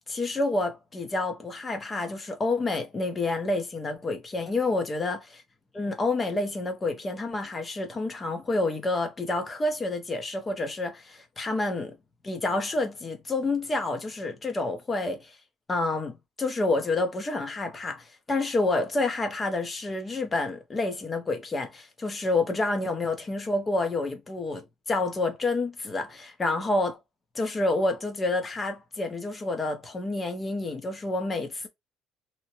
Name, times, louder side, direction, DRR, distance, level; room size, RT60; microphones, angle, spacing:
voice 1, 0.1-5.2 5.7-12.0 12.2-15.3 15.7-27.0 27.3-31.7, left 2 dB, 20° left, 0.8 m, -28 dB
2.9 x 2.1 x 2.9 m
cardioid pair, 135°, 0 cm